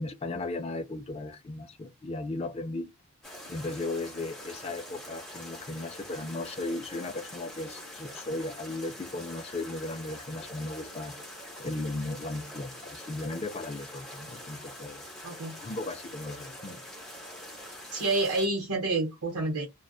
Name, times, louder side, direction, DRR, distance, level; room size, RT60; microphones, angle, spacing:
voice 1, 0.0-2.9 3.5-11.1 11.6-15.0 15.6-16.8, left 2 dB, 25° left, 0.3 m, -36 dB
sound 1, 3.2-18.5, left 1 dB, ahead, 0.8 m, -45 dB
voice 2, 15.2-15.6 17.9-19.7, right 2 dB, 90° right, 0.8 m, -28 dB
2.5 x 2.1 x 2.3 m
head